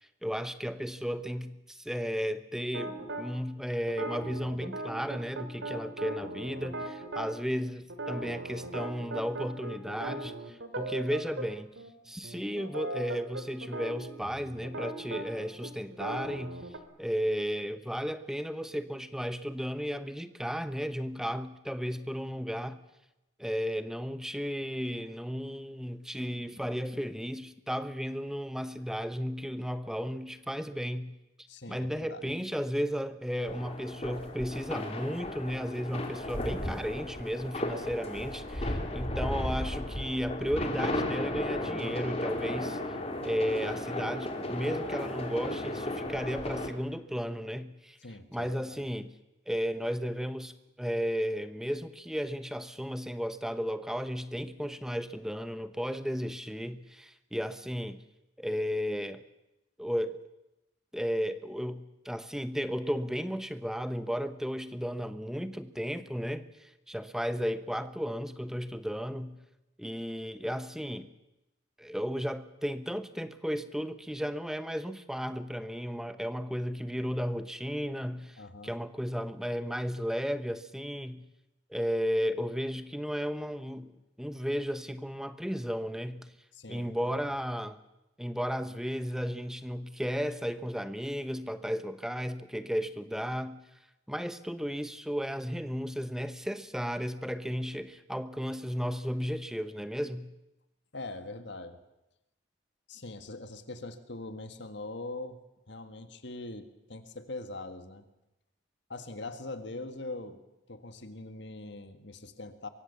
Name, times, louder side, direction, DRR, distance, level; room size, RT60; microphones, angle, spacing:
voice 1, 0.2-11.7 12.0-16.6 17.0-22.8 23.4-31.1 31.7-42.8 43.2-48.0 48.3-49.1 49.5-58.0 58.4-59.2 59.8-60.2 60.9-69.4 69.8-71.1 71.8-81.2 81.7-83.9 84.2-86.3 86.7-87.8 88.2-93.6 94.1-100.3, equal, 5° right, 0.9 m, -34 dB
sound 1, 2.7-3.3 3.9-7.3 7.9-11.5 11.8-11.9 12.2-16.8, right 2 dB, 70° right, 3.1 m, -38 dB
voice 2, 31.5-32.3 48.0-48.8 78.4-78.7 86.5-87.1 100.9-101.8 102.9-105.4 105.7-108.0 108.9-110.4 110.7-112.7, left 2 dB, 60° left, 1.7 m, -42 dB
sound 2, 33.5-46.7, left 1 dB, 30° left, 2.9 m, -35 dB
23.5 x 23.5 x 7.0 m
head